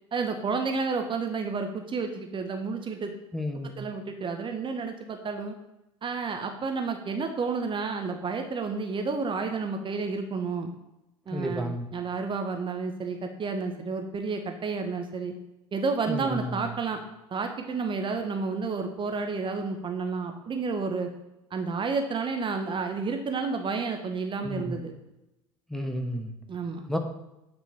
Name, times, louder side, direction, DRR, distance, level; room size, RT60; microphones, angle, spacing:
voice 1, 0.1-3.1 3.6-5.5 6.0-10.7 11.3-15.3 15.7-17.0 17.3-21.1 21.5-24.9 26.5-26.8, right 4 dB, 30° right, 5 dB, 1.0 m, -31 dB
voice 2, 3.3-3.8 11.3-11.9 16.1-16.6 24.4-24.8 25.7-26.3 26.9-27.0, equal, ahead, 4 dB, 1.2 m, -31 dB
9.0 x 4.7 x 4.3 m, 0.93 s
figure-of-eight pair, 65°, 16 cm